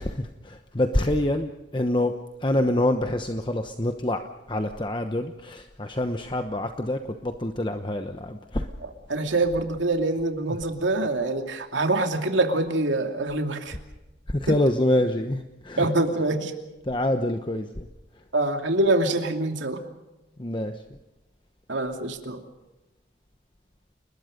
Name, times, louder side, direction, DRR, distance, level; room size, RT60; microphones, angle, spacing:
voice 1, 0.0-4.2 4.5-8.7 14.3-15.9 16.9-17.9 20.4-20.8, left 1 dB, 25° left, 6 dB, 1.0 m, -26 dB
voice 2, 9.1-13.8 14.5-14.6 15.8-16.5 18.3-19.8 21.7-22.4, right 2 dB, 80° right, 4 dB, 2.7 m, -25 dB
30.0 x 20.5 x 5.3 m, 1.0 s
head